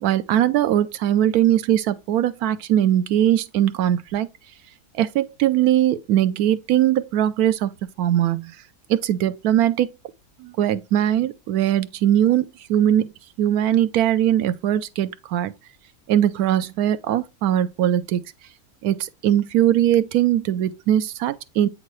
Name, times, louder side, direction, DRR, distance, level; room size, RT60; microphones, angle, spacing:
voice 1, 0.0-4.3 4.9-7.7 8.0-8.5 8.9-9.9 10.4-13.1 13.4-15.5 16.1-18.2 18.8-21.7, right 11 dB, 85° right, 1.1 m, -20 dB
8.4 x 3.8 x 3.0 m
omnidirectional pair, 1.6 m